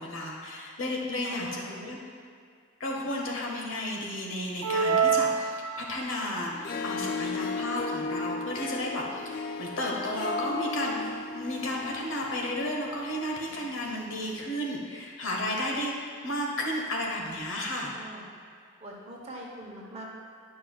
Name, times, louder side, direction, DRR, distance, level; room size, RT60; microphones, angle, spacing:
voice 1, 0.0-2.0 2.8-17.9, left 1 dB, 70° left, -1 dB, 1.1 m, -33 dB
voice 2, 1.2-1.8 17.9-18.3 18.8-20.0, right 1 dB, 30° right, -4 dB, 1.0 m, -43 dB
sound 1, 4.6-6.3, right 6 dB, 75° right, 0.4 m, -26 dB
Harp, 6.5-13.9, left 3 dB, 45° left, 0.3 m, -35 dB
11.0 x 5.4 x 2.4 m, 2.2 s
head